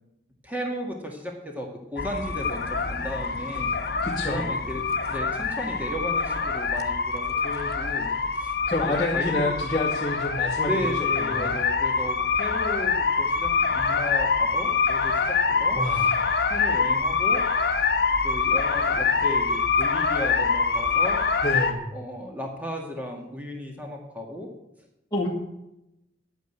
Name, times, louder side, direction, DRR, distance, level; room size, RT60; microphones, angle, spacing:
voice 1, 0.4-3.7 4.3-8.5 9.1-9.5 10.6-16.1 16.5-17.5 18.2-21.2 21.9-24.6, equal, 10° right, 0 dB, 1.9 m, -35 dB
sound 1, 2.0-21.7, left 5 dB, 55° left, 1.2 m, -25 dB
voice 2, 4.0-4.5 8.7-10.7 11.3-11.6 15.7-16.4 21.4-21.9 25.1-25.3, left 1 dB, 20° left, -7 dB, 2.0 m, -28 dB
11.0 x 9.3 x 8.2 m, 0.89 s
head